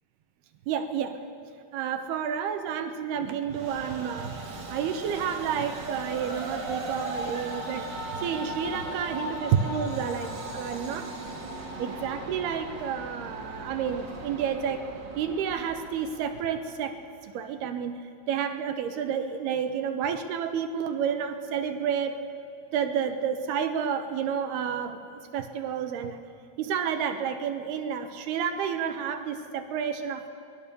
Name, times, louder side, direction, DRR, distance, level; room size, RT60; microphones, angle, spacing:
voice 1, 0.7-1.2 1.7-7.9 8.2-11.1 11.8-14.8 15.2-18.0 18.3-22.3 22.7-25.0 25.3-26.2 26.6-30.3, right 7 dB, 75° right, 8 dB, 3.0 m, -30 dB
Train, 3.5-17.0, right 2 dB, 40° right, 1.8 m, -38 dB
23.5 x 20.5 x 6.9 m, 2.7 s
omnidirectional pair, 4.8 m